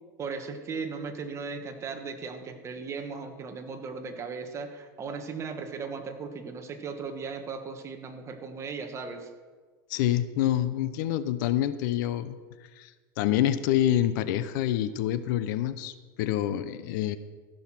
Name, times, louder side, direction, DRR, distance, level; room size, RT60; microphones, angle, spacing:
voice 1, 0.2-9.3, right 5 dB, 25° right, 6 dB, 1.5 m, -37 dB
voice 2, 9.9-12.4 12.8-12.9 13.2-17.2, left 12 dB, 70° left, 13 dB, 0.7 m, -27 dB
15.0 x 6.5 x 6.0 m, 1.4 s
supercardioid pair, 125°, 11 cm